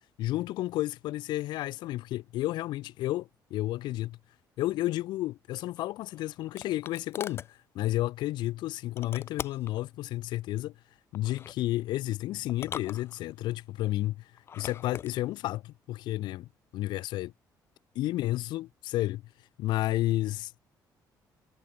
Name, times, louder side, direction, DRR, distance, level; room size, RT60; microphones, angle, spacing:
voice 1, 0.2-4.2 4.6-10.7 11.1-17.3 17.9-19.2 19.6-20.6, left 16 dB, 80° left, 1.5 m, -32 dB
sound 1, 5.8-7.5 9.0-9.8 11.1-11.6 12.5-13.5 14.4-15.1, left 8 dB, 35° left, 0.9 m, -41 dB
cardioid pair, 175°, 8 cm